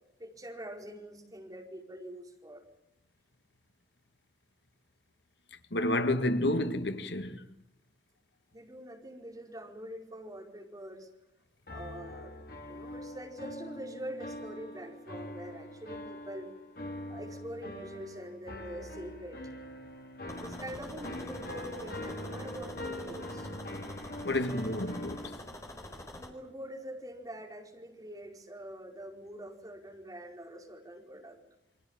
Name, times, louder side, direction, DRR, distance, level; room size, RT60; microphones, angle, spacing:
voice 1, 0.2-2.6 8.5-11.1 11.7-12.4 12.7-16.5 17.1-19.4 20.4-23.5 26.1-31.4, right 1 dB, 20° right, 4.7 m, -44 dB
voice 2, 5.7-7.4 24.2-25.2, left 1 dB, 75° left, 2.0 m, -29 dB
sound 1, 11.7-25.4, left 1 dB, 55° left, 2.9 m, -43 dB
sound 2, 20.3-26.3, left 1 dB, 15° left, 4.7 m, -46 dB
28.5 x 24.0 x 7.4 m
head